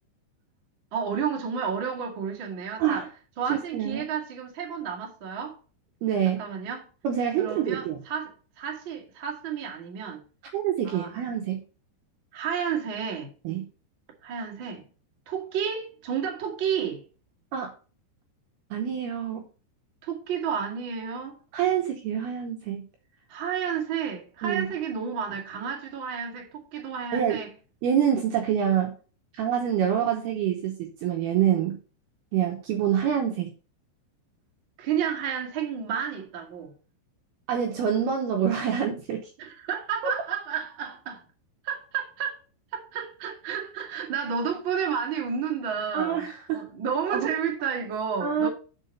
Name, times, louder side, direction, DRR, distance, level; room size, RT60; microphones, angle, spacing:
voice 1, 0.9-3.1 3.4-5.6 6.4-6.9 7.4-10.2 10.8-11.1 12.3-13.3 14.2-14.8 15.2-17.0 20.0-21.4 23.3-27.5 34.8-36.7 39.4-41.2 41.6-42.3 42.7-48.5, right 7 dB, 50° right, 1.4 m, -31 dB
voice 2, 3.5-4.1 6.0-6.4 7.0-8.0 10.5-11.6 13.4-13.7 17.5-17.7 18.7-19.5 21.5-22.8 24.4-24.7 27.1-27.4 27.8-28.9 29.3-31.8 32.3-33.5 37.5-39.2 45.9-46.7 47.1-47.3 48.2-48.5, right 9 dB, 75° right, 2.5 m, -26 dB
6.6 x 6.2 x 5.5 m
omnidirectional pair, 5.6 m